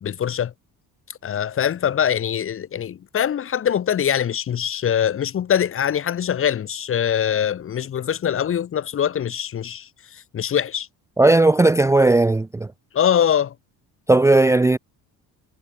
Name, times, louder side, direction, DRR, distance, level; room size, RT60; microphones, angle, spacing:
voice 1, 0.0-0.5 1.1-10.9 12.9-13.5, left 9 dB, 35° left, 1.1 m, -23 dB
voice 2, 11.2-12.7 14.1-14.8, right 2 dB, 5° right, 0.6 m, -16 dB
cardioid pair, 160°, 39 cm